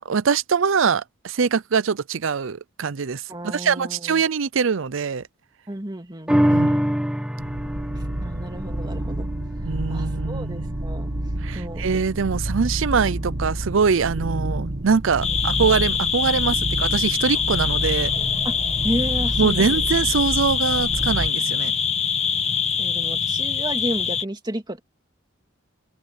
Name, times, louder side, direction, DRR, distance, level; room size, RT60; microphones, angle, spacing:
voice 1, 0.1-5.2 6.5-7.0 9.6-10.7 11.4-18.1 19.4-21.7, right 5 dB, 65° right, 0.5 m, -23 dB
voice 2, 3.3-4.2 5.7-6.8 8.2-9.3 9.9-11.1 11.5-11.9 15.2-15.3 18.4-18.6 18.8-19.7 22.8-24.8, right 1 dB, 20° right, 2.2 m, -32 dB
sound 1, 6.3-12.9 13.4-13.5, equal, 5° right, 1.2 m, -27 dB
sound 2, 7.4-21.3, right 1 dB, 50° right, 1.5 m, -29 dB
sound 3, 15.2-24.2, left 7 dB, 30° left, 1.5 m, -24 dB
head